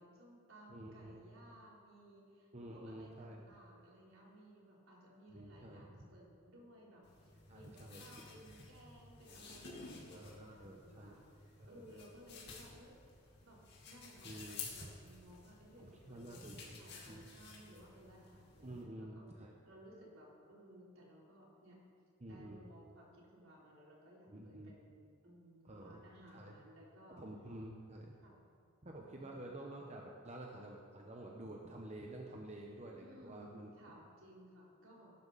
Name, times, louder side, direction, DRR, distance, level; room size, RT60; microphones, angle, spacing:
voice 1, 0.0-13.0 13.4-13.6 13.9-16.5 16.8-19.3 19.6-21.8 22.2-27.2 28.2-28.5 29.1-29.4 33.0-35.2, equal, 70° right, -4 dB, 3.7 m, -59 dB
voice 2, 0.7-1.2 2.5-3.5 5.3-6.1 7.5-8.3 8.6-8.7 10.1-11.1 11.6-11.9 14.2-14.9 15.8-17.3 18.6-19.6 22.2-22.6 24.3-24.7 25.6-26.0 26.3-26.5 27.2-28.2 28.8-33.7, right 1 dB, 30° right, 0 dB, 0.9 m, -50 dB
sound 1, 7.0-18.8, left 4 dB, 50° left, 2.7 m, -53 dB
18.0 x 11.5 x 4.1 m, 2.2 s
head